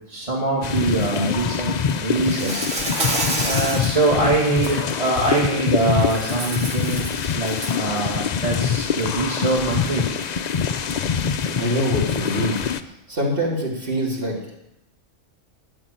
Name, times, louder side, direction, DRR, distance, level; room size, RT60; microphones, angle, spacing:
voice 1, 0.1-2.6 3.4-7.1 7.3-10.0, right 2 dB, 25° right, -5 dB, 2.3 m, -23 dB
sound 1, 0.6-12.8, left 7 dB, 60° left, 0.4 m, -25 dB
Insect, 2.2-4.0 4.4-4.7 6.0-7.8, right 2 dB, 65° right, 2.4 m, -29 dB
voice 2, 11.6-12.6 13.1-14.5, equal, 40° right, -3 dB, 3.4 m, -24 dB
12.5 x 6.6 x 9.0 m, 0.84 s
omnidirectional pair, 1.4 m